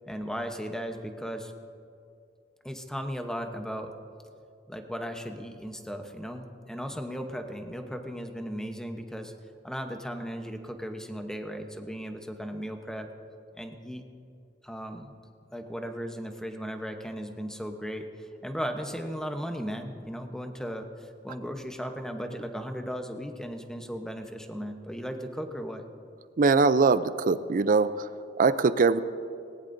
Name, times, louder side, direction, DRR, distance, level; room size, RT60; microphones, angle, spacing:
voice 1, 0.1-1.5 2.6-3.9 4.7-9.3 9.6-13.1 13.5-14.0 14.6-15.1 15.5-25.8, equal, 5° left, 5 dB, 0.9 m, -36 dB
voice 2, 26.4-28.1 28.4-29.0, right 4 dB, 45° right, 14 dB, 0.5 m, -22 dB
19.0 x 18.5 x 2.7 m, 2.5 s
head